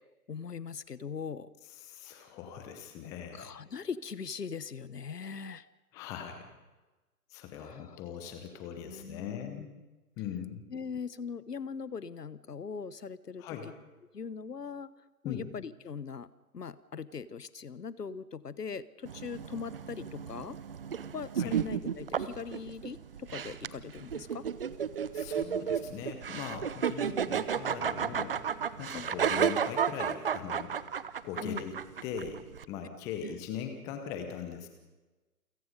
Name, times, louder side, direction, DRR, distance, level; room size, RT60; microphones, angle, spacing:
voice 1, 0.3-1.5 3.0-3.1 3.3-5.7 7.6-8.0 8.8-9.6 10.7-13.4 14.1-14.9 15.2-16.3 16.5-20.6 21.1-24.5 28.9-29.1 31.4-31.6 33.2-33.3, left 6 dB, 80° left, 17 dB, 1.1 m, -40 dB
voice 2, 1.8-3.5 5.9-6.5 7.3-9.7 10.2-10.6 13.4-13.7 15.2-15.5 21.4-21.6 25.1-28.3 28.8-30.8 31.2-32.4 32.7-34.7, left 7 dB, 5° left, 6 dB, 0.8 m, -40 dB
sound 1, 19.1-32.7, right 7 dB, 35° right, 0.7 m, -33 dB
28.5 x 17.5 x 5.3 m, 1.2 s
figure-of-eight pair, 145°, 47 cm